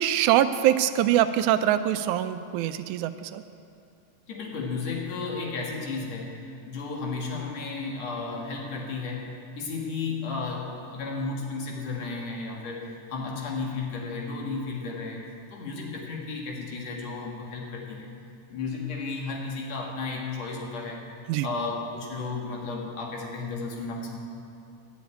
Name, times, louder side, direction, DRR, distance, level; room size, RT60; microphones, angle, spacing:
voice 1, 0.0-3.4 21.3-21.5, right 11 dB, 85° right, 11 dB, 2.0 m, -23 dB
voice 2, 4.3-9.2 9.6-18.1 18.5-21.0 21.4-24.3, left 4 dB, 60° left, -1 dB, 2.9 m, -33 dB
12.5 x 7.2 x 9.2 m, 2.7 s
omnidirectional pair, 3.5 m